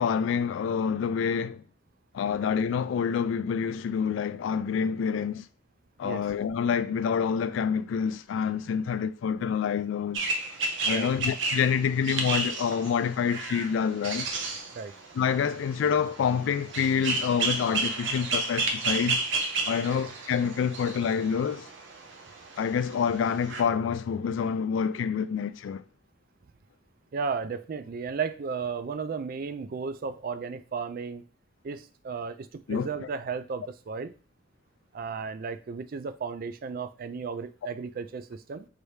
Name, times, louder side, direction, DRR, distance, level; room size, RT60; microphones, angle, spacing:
voice 1, 0.0-1.6 2.1-5.4 6.0-10.2 10.8-14.3 15.2-19.2 19.7-21.7 22.6-25.8 32.7-32.9, left 7 dB, 75° left, 0.3 m, -27 dB
sound 1, 10.1-23.6, right 3 dB, 70° right, 0.7 m, -32 dB
voice 2, 27.1-31.2 31.6-34.1 34.9-38.7, right 5 dB, 50° right, 0.3 m, -34 dB
4.7 x 2.7 x 3.2 m
head